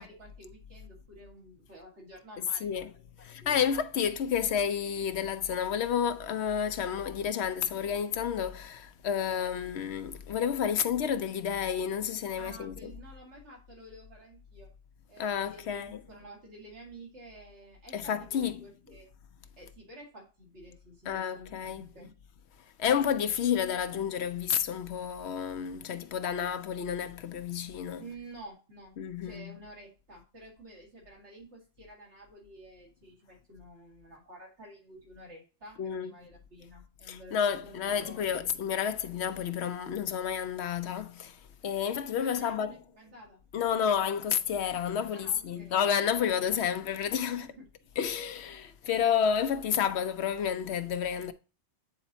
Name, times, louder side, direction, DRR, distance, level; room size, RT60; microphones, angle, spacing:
voice 1, 0.0-2.9 3.2-3.7 12.4-14.7 15.1-19.1 19.6-22.1 28.0-38.8 39.3-39.4 42.3-43.4 45.1-45.8 47.3-47.9, right 1 dB, 85° right, 2.4 m, -51 dB
voice 2, 3.2-12.9 15.2-16.0 17.9-18.6 21.1-21.8 22.8-28.0 29.0-29.6 35.8-36.1 37.1-42.7 43.5-47.5 48.0-51.3, left 8 dB, 75° left, 0.9 m, -30 dB
8.8 x 4.2 x 2.6 m
omnidirectional pair, 1.1 m